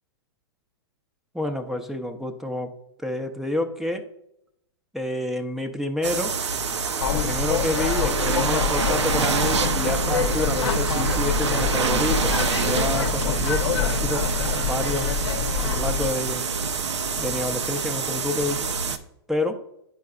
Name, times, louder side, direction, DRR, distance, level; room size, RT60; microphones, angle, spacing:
voice 1, 1.3-4.0 4.9-6.4 7.1-15.2 15.6-16.5 17.2-18.7 19.3-19.5, left 1 dB, ahead, 6 dB, 0.5 m, -29 dB
sound 1, 6.0-19.0, right 5 dB, 85° right, 0.6 m, -26 dB
sound 2, 7.0-16.1, left 7 dB, 75° left, 0.8 m, -26 dB
9.6 x 4.7 x 2.3 m, 0.78 s
hypercardioid pair, 120°, 14 cm